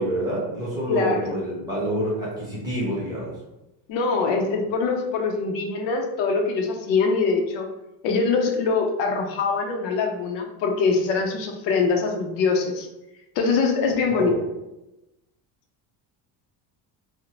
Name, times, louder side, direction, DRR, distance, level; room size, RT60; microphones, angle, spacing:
voice 1, 0.0-3.4 14.1-14.3, right 1 dB, 10° right, -8 dB, 0.8 m, -27 dB
voice 2, 0.9-1.3 3.9-7.7 8.0-12.9 13.4-14.4, left 4 dB, 80° left, 3 dB, 0.6 m, -23 dB
2.6 x 2.0 x 2.8 m, 0.96 s
cardioid pair, 165°, 44 cm